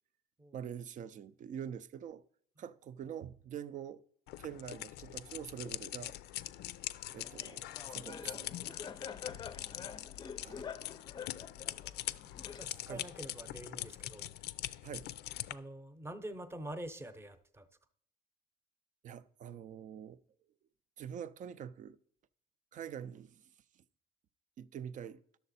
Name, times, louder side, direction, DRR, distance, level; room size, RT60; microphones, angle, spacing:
voice 1, 0.5-2.2 2.6-4.0 4.4-6.2 7.1-9.2 10.4-10.7 12.9-13.0 14.8-15.1 19.0-20.2 21.0-22.0 22.7-23.4 24.6-25.2, right 8 dB, 50° right, 0.5 m, -45 dB
sound 1, 4.3-15.5, left 15 dB, 80° left, 0.4 m, -43 dB
Laughter, 7.2-13.1, left 6 dB, 25° left, 0.5 m, -47 dB
voice 2, 11.6-12.0 12.6-14.3 15.5-17.7, right 1 dB, 15° right, 0.8 m, -46 dB
11.0 x 6.9 x 4.2 m
cardioid pair, 110°, 17 cm